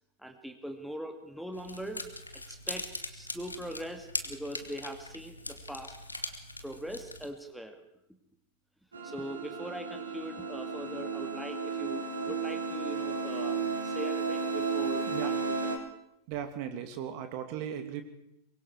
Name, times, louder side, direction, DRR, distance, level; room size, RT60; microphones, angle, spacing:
voice 1, 0.2-2.1 2.5-5.9 6.6-7.8 9.0-15.3 15.6-15.8, equal, ahead, 4 dB, 2.3 m, -41 dB
sound 1, 1.5-7.3, left 2 dB, 80° left, 1.7 m, -41 dB
sound 2, 8.9-15.8, right 5 dB, 75° right, 4.3 m, -33 dB
voice 2, 16.3-18.0, right 9 dB, 45° right, 7 dB, 2.5 m, -37 dB
24.0 x 22.5 x 4.8 m, 0.80 s
figure-of-eight pair, 90°, 0 cm